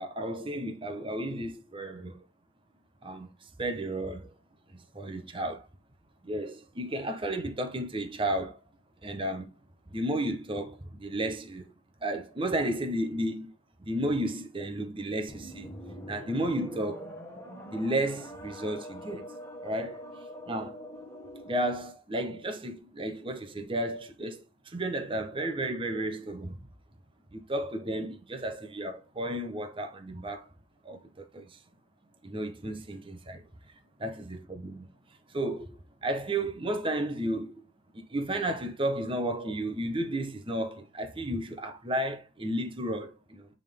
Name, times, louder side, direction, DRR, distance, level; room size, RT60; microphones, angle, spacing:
voice 1, 0.0-2.2 3.0-3.3 3.6-4.3 4.7-5.7 6.2-8.6 9.0-9.5 9.9-11.7 12.0-13.5 13.8-15.7 16.1-17.1 17.7-19.3 19.6-20.0 20.5-20.7 21.5-24.4 24.7-26.6 27.3-30.5 30.8-31.6 32.2-33.4 34.0-34.9 35.3-35.7 36.0-37.5 37.9-43.5, right 1 dB, 25° right, 1.0 m, -33 dB
sound 1, 15.3-21.7, equal, 15° left, 1.5 m, -44 dB
9.0 x 3.8 x 3.6 m
head